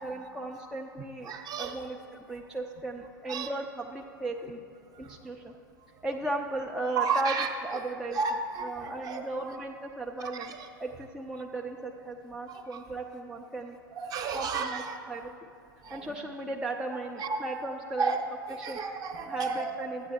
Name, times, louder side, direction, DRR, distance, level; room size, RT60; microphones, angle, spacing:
voice 1, 0.0-1.3 1.6-4.6 5.0-5.5 6.0-8.2 8.6-10.5 10.8-13.8 14.3-14.8 15.1-15.3 15.9-18.1 18.6-18.8 19.3-20.1, right 2 dB, 5° right, 0 dB, 0.4 m, -36 dB
voice 2, 1.2-1.8 3.3-3.5 4.9-5.1 7.0-7.5 8.2-9.2 10.4-10.6 12.5-12.6 14.0-15.0 15.8-16.1 17.2-17.5 18.0-18.2 18.5-19.7, right 5 dB, 35° right, 5 dB, 0.8 m, -32 dB
13.5 x 8.6 x 2.8 m, 2.5 s
figure-of-eight pair, 95°, 12 cm